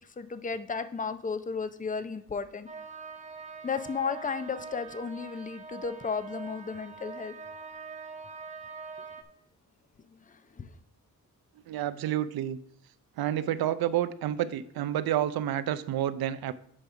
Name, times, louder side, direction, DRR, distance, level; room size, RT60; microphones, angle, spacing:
voice 1, 0.2-2.7 3.6-7.3 10.1-10.7, left 5 dB, 20° left, 11 dB, 0.6 m, -34 dB
sound 1, 2.7-9.2, right 4 dB, 20° right, 0.8 m, -44 dB
voice 2, 11.7-12.6 13.2-16.5, right 11 dB, 80° right, 14 dB, 0.6 m, -29 dB
9.9 x 3.4 x 5.7 m, 0.65 s
cardioid pair, 100°, 36 cm